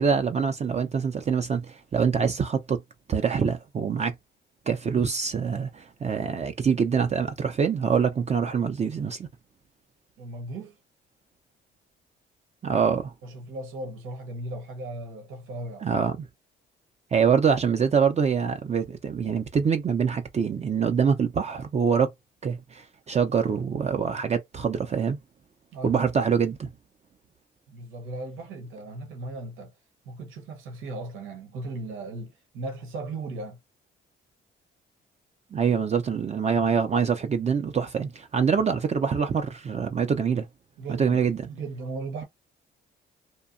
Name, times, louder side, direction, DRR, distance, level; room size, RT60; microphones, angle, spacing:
voice 1, 0.0-2.8 3.1-4.1 4.7-9.3 12.6-13.1 15.8-16.3 17.1-22.1 22.4-25.2 25.8-26.7 35.5-40.5 41.0-41.5, right 6 dB, 35° right, 0.5 m, -25 dB
voice 2, 10.2-10.8 13.2-15.9 25.7-26.0 27.7-29.7 30.0-33.6 40.8-42.2, right 2 dB, 85° right, 1.0 m, -37 dB
2.7 x 2.2 x 2.5 m
cardioid pair, 90°, 20 cm